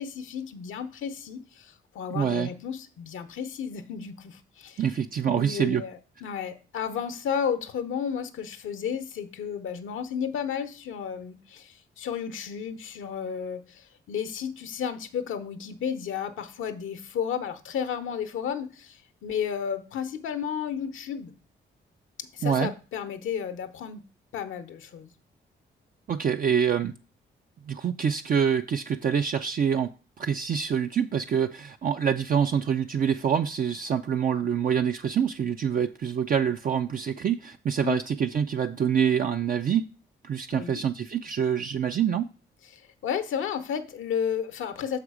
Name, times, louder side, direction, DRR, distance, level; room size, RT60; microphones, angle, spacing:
voice 1, 0.0-4.8 5.2-21.3 22.3-24.0 24.3-25.1 37.8-38.0 40.5-40.8 42.7-45.0, left 7 dB, 75° left, 11 dB, 0.8 m, -33 dB
voice 2, 2.1-2.5 4.8-5.8 22.4-22.7 26.1-26.9 27.7-29.9 30.2-39.9 40.2-42.3, right 7 dB, 45° right, 7 dB, 0.4 m, -26 dB
6.2 x 5.0 x 4.7 m, 0.36 s
supercardioid pair, 55°, 21 cm